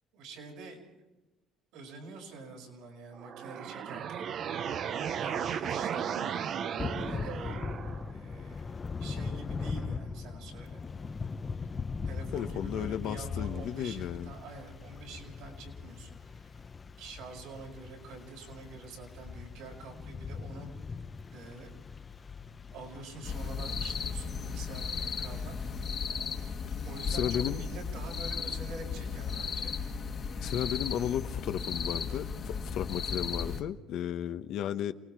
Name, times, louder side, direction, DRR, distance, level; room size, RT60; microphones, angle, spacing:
voice 1, 0.1-1.1 1.7-4.3 5.2-6.3 7.0-7.6 8.1-10.8 12.0-16.6 17.0-21.1 21.3-21.7 22.7-25.6 26.8-29.8, right 3 dB, 90° right, 0 dB, 6.5 m, -46 dB
sound 1, 3.1-8.1, right 8 dB, 55° right, 0.8 m, -35 dB
Thunder / Rain, 6.8-25.8, left 5 dB, 25° left, 0.7 m, -40 dB
voice 2, 12.3-14.3 27.1-27.6 30.4-34.9, left 10 dB, 65° left, 10 dB, 1.0 m, -34 dB
sound 2, 23.2-33.6, left 5 dB, 40° left, 1.8 m, -35 dB
28.5 x 20.0 x 4.8 m, 1.0 s
cardioid pair, 120°, 0 cm